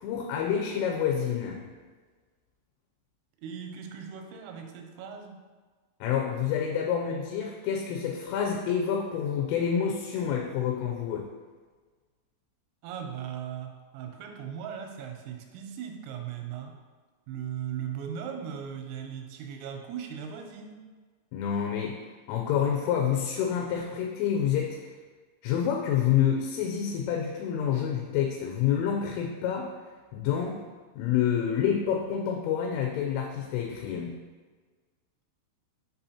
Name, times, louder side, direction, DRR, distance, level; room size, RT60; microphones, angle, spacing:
voice 1, 0.0-1.6 6.0-11.3 21.3-22.0 22.3-24.9 25.4-29.7 30.1-30.6 31.0-34.2, left 8 dB, 85° left, 1 dB, 3.2 m, -28 dB
voice 2, 3.4-5.4 12.8-16.8 17.3-20.9, right 8 dB, 90° right, 4 dB, 3.4 m, -38 dB
7.0 x 5.4 x 2.8 m, 1.4 s
omnidirectional pair, 5.8 m